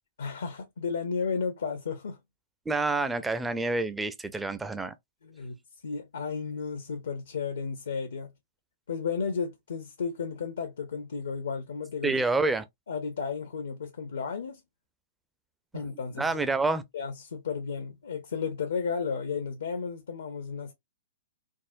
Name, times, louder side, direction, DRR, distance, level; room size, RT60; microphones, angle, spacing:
voice 1, 0.2-2.2 5.2-8.3 8.9-12.3 12.9-14.6 15.7-16.3 16.9-20.7, left 5 dB, 65° left, 0.5 m, -33 dB
voice 2, 2.7-4.9 12.0-12.6 16.2-16.8, right 3 dB, 10° right, 0.4 m, -27 dB
3.5 x 2.0 x 2.5 m
figure-of-eight pair, 110°, 0 cm